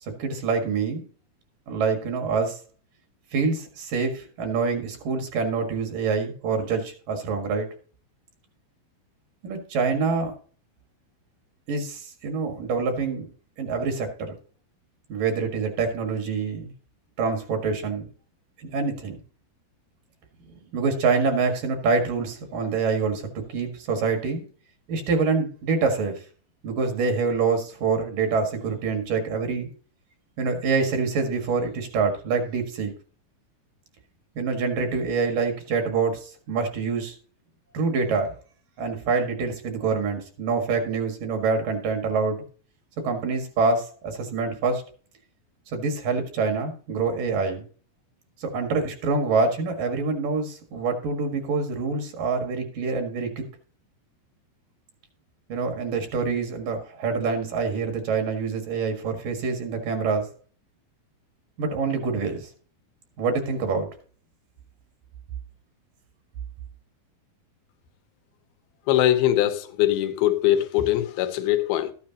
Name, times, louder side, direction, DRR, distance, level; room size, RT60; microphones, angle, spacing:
voice 1, 0.2-1.0 1.7-2.6 3.3-7.7 9.4-10.3 11.7-13.3 13.6-14.3 15.1-16.7 17.2-18.1 18.6-19.2 20.7-24.4 24.9-26.2 26.6-29.7 30.4-32.9 34.4-37.1 37.7-38.3 38.8-42.4 43.0-44.8 45.7-47.6 48.4-53.4 55.5-60.3 61.6-62.5 63.2-63.9, right 4 dB, 65° right, 3.2 m, -26 dB
voice 2, 68.9-71.9, left 12 dB, 85° left, 2.8 m, -22 dB
13.5 x 9.6 x 2.9 m
omnidirectional pair, 4.3 m